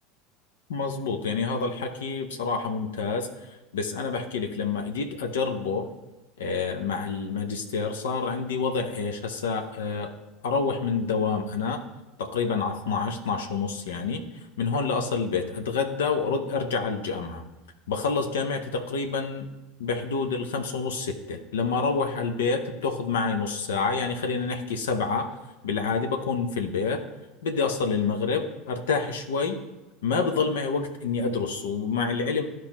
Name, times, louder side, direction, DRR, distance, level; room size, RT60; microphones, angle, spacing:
voice 1, 0.7-5.9 6.4-10.1 10.4-11.8 12.2-14.2 14.6-17.4 17.9-19.5 19.8-25.4 25.6-27.0 27.4-29.6 30.0-32.4, left 4 dB, 70° left, 6 dB, 0.7 m, -28 dB
13.0 x 4.5 x 3.0 m, 1.0 s
figure-of-eight pair, 75°, 0 cm